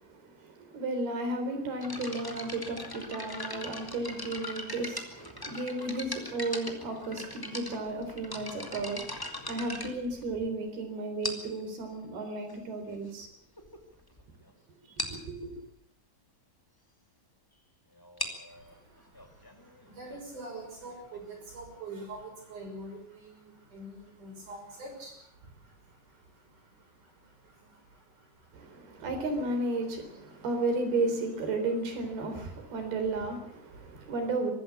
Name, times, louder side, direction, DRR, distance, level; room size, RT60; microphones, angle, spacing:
voice 1, 0.0-13.3 15.0-15.6 28.5-34.5, right 2 dB, 90° right, 5.9 m, -34 dB
sound 1, 1.8-10.6 11.2-11.7 12.5-12.6 13.2-13.3 13.6-13.8 14.1-14.2 14.5-14.6 15.0-15.3 18.0-21.4, left 1 dB, 10° left, 1.6 m, -40 dB
voice 2, 18.5-29.1 30.3-30.5 32.3-32.5 32.8-32.9 33.7-34.1, right 2 dB, 55° right, 7.3 m, -47 dB
24.5 x 13.5 x 8.5 m
omnidirectional pair, 4.3 m